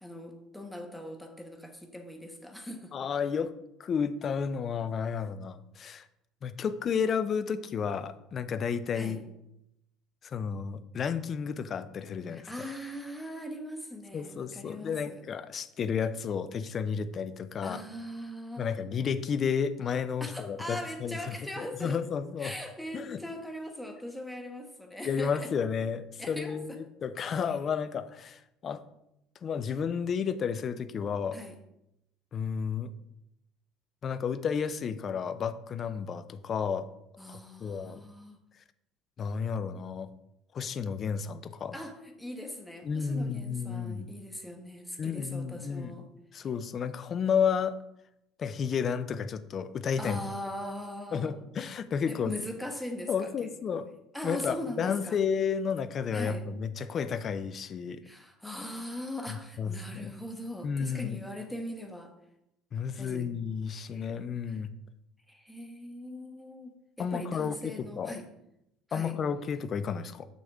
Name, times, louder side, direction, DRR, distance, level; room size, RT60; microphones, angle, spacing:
voice 1, 0.0-2.9 8.9-9.2 12.3-15.2 17.6-18.9 20.2-22.0 22.4-25.5 26.2-26.8 31.3-31.6 37.2-38.4 41.7-46.1 50.0-51.3 52.1-53.8 54.1-55.2 56.1-56.5 58.0-62.1 63.0-63.3 64.5-64.6 65.3-68.3 68.9-69.2, left 1 dB, 5° left, 4 dB, 1.1 m, -40 dB
voice 2, 2.9-3.5 3.8-6.1 6.4-9.2 10.2-12.5 14.1-17.8 18.6-22.5 22.9-23.2 25.0-28.8 29.4-31.4 32.3-32.9 34.0-36.9 37.3-38.0 39.2-40.1 40.5-41.8 42.8-44.1 45.0-45.9 46.3-47.8 48.4-50.2 51.1-52.3 53.1-53.8 54.2-58.0 59.3-60.1 60.6-61.2 62.7-64.7 67.0-68.2 68.9-70.3, left 6 dB, 35° left, 12 dB, 0.5 m, -32 dB
6.9 x 6.3 x 3.5 m, 0.83 s
cardioid pair, 125°, 0 cm